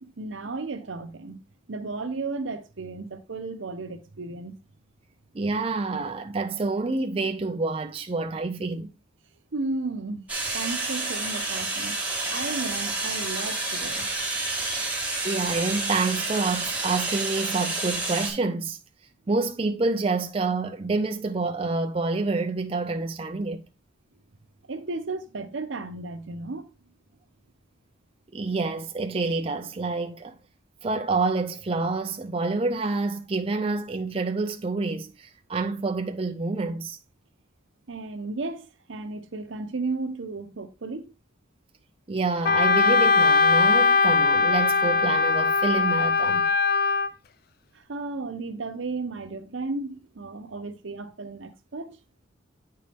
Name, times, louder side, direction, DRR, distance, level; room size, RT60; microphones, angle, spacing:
voice 1, 0.0-1.4 1.7-4.5 9.5-10.2 10.5-11.9 12.3-14.1 24.7-26.7 37.9-41.1 47.7-52.0, right 3 dB, 80° right, 0.8 m, -34 dB
voice 2, 5.3-8.9 15.2-18.8 19.3-23.6 28.3-30.4 30.8-37.0 42.1-46.5, right 3 dB, 30° right, 0.5 m, -28 dB
sound 1, 10.3-18.3, right 2 dB, 10° right, 1.7 m, -29 dB
Wind instrument woodwind instrument, 42.5-47.1, left 4 dB, 50° left, 0.4 m, -20 dB
8.5 x 4.5 x 3.4 m
head